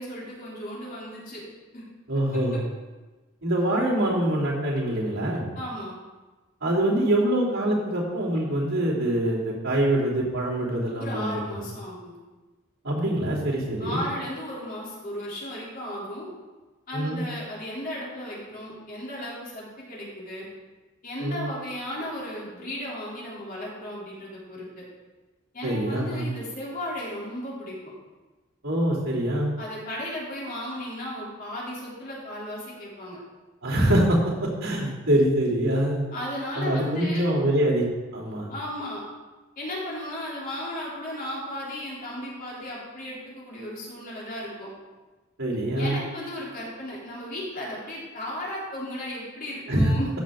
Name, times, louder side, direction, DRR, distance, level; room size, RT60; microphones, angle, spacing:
voice 1, 0.0-1.4 1.7-1.8 5.6-6.0 11.0-12.2 13.8-16.3 16.9-20.5 21.0-24.8 25.5-27.9 29.6-33.2 36.1-37.3 38.5-39.0 39.6-44.7 45.7-50.1, left 1 dB, 45° left, -6 dB, 3.3 m, -35 dB
voice 2, 2.1-2.6 3.4-5.5 6.6-11.6 12.8-14.0 16.9-17.2 21.2-21.4 25.6-26.3 28.6-29.5 33.6-36.0 36.6-37.8 38.1-38.5 45.4-46.0 49.7-49.9, right 1 dB, 80° right, -6 dB, 3.1 m, -24 dB
14.0 x 6.2 x 3.7 m, 1.2 s
head